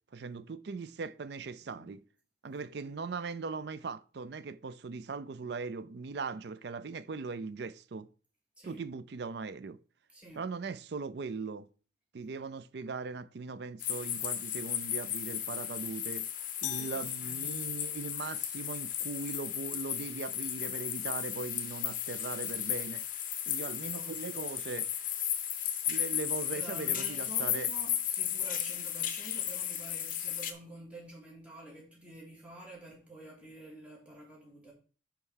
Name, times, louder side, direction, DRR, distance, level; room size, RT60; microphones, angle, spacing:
voice 1, 0.1-2.0 2.4-8.1 8.6-9.8 10.4-11.7 12.1-16.3 16.6-23.0 23.5-24.9 25.9-27.7, right 4 dB, 60° right, 0.4 m, -39 dB
voice 2, 10.1-10.4 16.7-17.6 23.8-24.4 26.5-34.7, right 2 dB, 5° right, 2.7 m, -49 dB
sound 1, 13.8-30.5, left 10 dB, 45° left, 0.8 m, -35 dB
sound 2, 16.6-18.0, left 15 dB, 70° left, 0.4 m, -42 dB
5.5 x 4.4 x 6.3 m
head